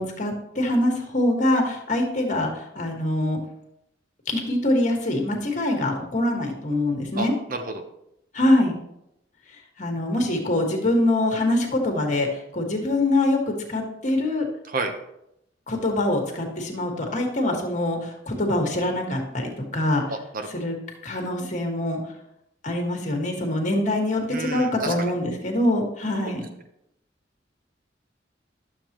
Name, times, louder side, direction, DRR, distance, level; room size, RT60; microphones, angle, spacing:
voice 1, 0.0-3.4 4.3-7.3 8.3-8.7 9.8-12.3 12.5-14.4 15.7-20.0 20.5-20.8 21.0-22.0 22.6-26.4, left 1 dB, 45° left, 2 dB, 1.7 m, -24 dB
voice 2, 7.2-7.8 14.7-14.9 20.1-20.7 24.3-25.0 26.2-26.3, right 2 dB, 50° right, 6 dB, 1.0 m, -31 dB
11.5 x 7.0 x 3.0 m, 0.81 s
head